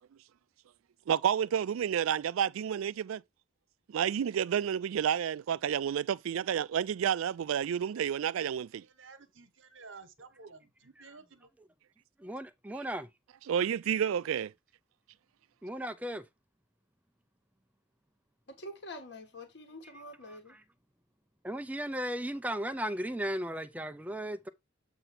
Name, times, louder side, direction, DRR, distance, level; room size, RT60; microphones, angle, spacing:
voice 1, 1.1-3.2 3.9-8.8 12.7-12.8 13.4-14.5, right 8 dB, 80° right, 0.3 m, -30 dB
voice 2, 8.8-11.5, right 4 dB, 65° right, 1.1 m, -53 dB
voice 3, 12.2-13.1 15.6-16.2 21.4-24.5, equal, 5° right, 0.4 m, -35 dB
voice 4, 18.5-20.6, left 1 dB, 55° left, 1.3 m, -46 dB
7.9 x 2.7 x 5.8 m
head